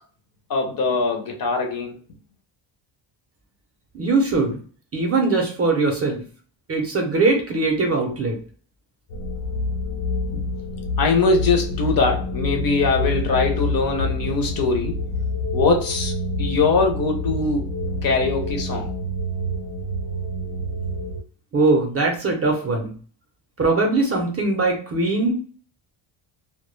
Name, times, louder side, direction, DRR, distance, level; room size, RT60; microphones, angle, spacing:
voice 1, 0.5-1.9 10.3-10.5 11.0-15.0 15.5-16.1 16.4-17.7 18.0-18.9, left 3 dB, 45° left, 0.5 m, -22 dB
voice 2, 3.9-4.6 4.9-6.2 6.7-8.4 21.5-22.9 23.6-25.3, right 3 dB, 30° right, 0.5 m, -21 dB
sound 1, 9.1-21.2, left 2 dB, 80° left, 0.9 m, -27 dB
2.2 x 2.1 x 3.0 m
cardioid pair, 150°, 49 cm